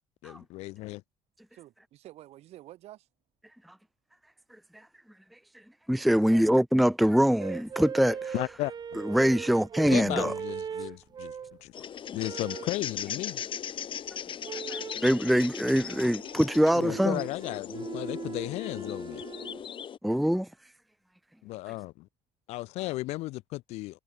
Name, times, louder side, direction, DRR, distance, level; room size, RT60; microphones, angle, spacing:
voice 1, 0.2-1.0 8.3-9.0 9.9-11.7 12.1-13.4 16.7-19.2 21.4-22.1 22.5-24.0, left 19 dB, 85° left, 0.6 m, -35 dB
voice 2, 1.5-3.1 6.1-6.5 21.5-21.8, right 15 dB, 80° right, 3.7 m, -50 dB
voice 3, 5.9-8.3 9.0-10.3 14.7-17.2 20.0-20.5, equal, ahead, 0.4 m, -24 dB
sound 1, 7.4-11.6 12.2-12.8 14.4-15.1 15.7-19.6, right 7 dB, 40° right, 1.0 m, -39 dB
sound 2, 11.7-20.0, left 8 dB, 50° left, 2.3 m, -38 dB
cardioid pair, 90°, 11 cm